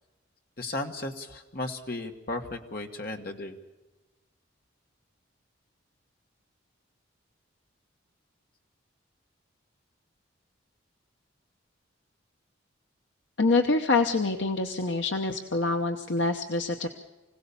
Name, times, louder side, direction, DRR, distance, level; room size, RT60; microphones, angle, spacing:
voice 1, 0.6-3.6, left 2 dB, 45° left, 4 dB, 1.7 m, -35 dB
voice 2, 13.4-16.9, left 3 dB, 65° left, 5 dB, 0.9 m, -26 dB
25.0 x 17.0 x 7.1 m, 1.1 s
head